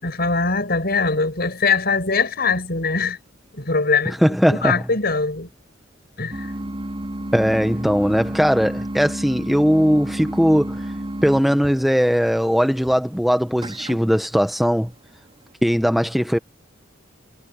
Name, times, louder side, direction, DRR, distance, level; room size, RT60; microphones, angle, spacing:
voice 1, 0.0-3.2 3.5-4.2 4.6-5.5 6.2-6.5, left 4 dB, 55° left, 7.4 m, -22 dB
voice 2, 4.1-4.8 7.3-10.9 11.2-14.9 15.6-16.4, equal, ahead, 0.7 m, -19 dB
sound 1, 6.3-15.5, right 1 dB, 30° right, 2.7 m, -32 dB
head